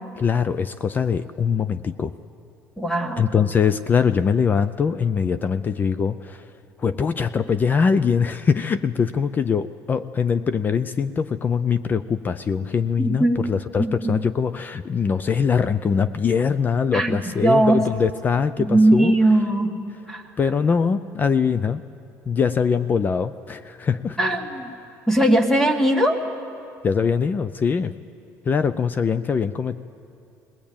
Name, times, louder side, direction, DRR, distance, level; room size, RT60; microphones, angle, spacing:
voice 1, 0.2-2.1 3.2-6.5 6.8-19.2 20.4-21.8 22.3-24.2 26.8-27.9 28.4-29.8, left 6 dB, 30° left, 13 dB, 0.4 m, -22 dB
voice 2, 2.8-3.3 13.0-13.5 13.8-14.2 16.9-17.8 18.6-19.7 20.1-20.2 24.2-24.7 25.1-26.2, right 1 dB, 5° left, 4 dB, 1.9 m, -19 dB
21.0 x 18.0 x 8.7 m, 2.6 s
cardioid pair, 130°, 7 cm